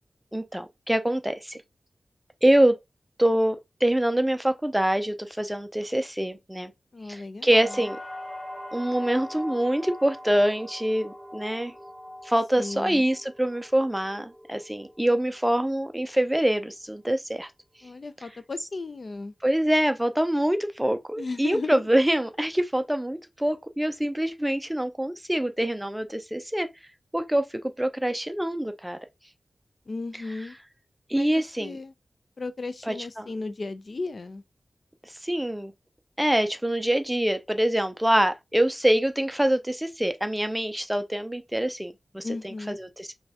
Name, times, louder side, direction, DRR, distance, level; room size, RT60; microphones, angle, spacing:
voice 1, 0.3-1.6 2.4-2.8 3.2-3.6 3.8-6.7 7.1-8.0 8.7-11.7 12.2-17.5 19.4-26.7 27.1-27.4 27.8-29.0 31.1-31.8 32.8-33.3 35.2-35.7 36.2-43.1, right 1 dB, 5° right, 0.4 m, -25 dB
voice 2, 6.9-7.8 12.6-13.0 17.8-19.3 21.2-21.8 29.9-30.5 31.1-31.9 32.4-34.4 42.2-42.8, left 3 dB, 50° left, 0.4 m, -35 dB
sound 1, 7.5-15.4 15.8-16.5, left 1 dB, 15° left, 2.8 m, -42 dB
5.1 x 2.2 x 2.8 m
wide cardioid pair, 115°, 0 cm